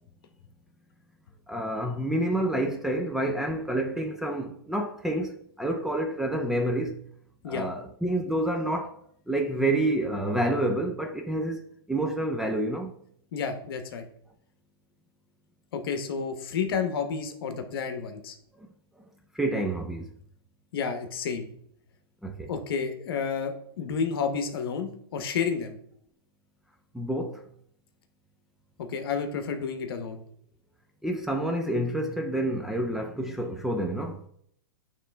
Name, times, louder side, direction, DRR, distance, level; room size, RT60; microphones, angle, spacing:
voice 1, 1.5-5.3 5.6-7.0 7.5-9.0 9.3-11.6 11.9-12.9 19.3-20.1 22.2-22.5 26.9-27.4 31.0-34.2, right 1 dB, 5° right, 0.4 m, -28 dB
voice 2, 13.3-14.0 15.7-18.3 20.7-21.5 22.5-25.7 28.8-30.2, left 6 dB, 65° left, 1.0 m, -30 dB
9.0 x 3.2 x 3.4 m
hypercardioid pair, 135°, 13 cm